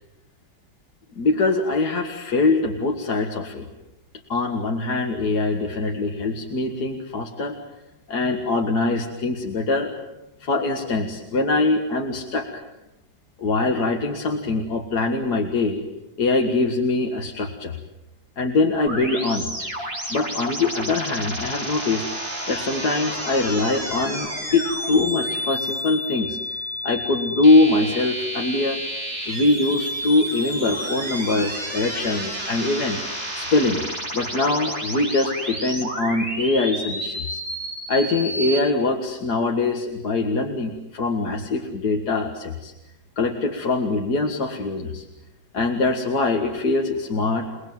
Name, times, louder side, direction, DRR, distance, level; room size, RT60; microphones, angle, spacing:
voice 1, 1.2-3.7 4.3-7.6 8.1-9.9 10.4-12.6 13.4-15.8 16.2-17.8 18.4-19.7 20.1-22.0 22.5-26.4 26.8-28.8 29.3-33.0 33.3-33.8 34.1-37.4 37.9-42.7 43.2-45.0 45.5-47.5, left 3 dB, 70° left, 3 dB, 2.4 m, -23 dB
sound 1, 18.9-38.6, equal, 35° right, 6.5 m, -30 dB
29.5 x 19.5 x 9.2 m, 0.95 s
omnidirectional pair, 1.8 m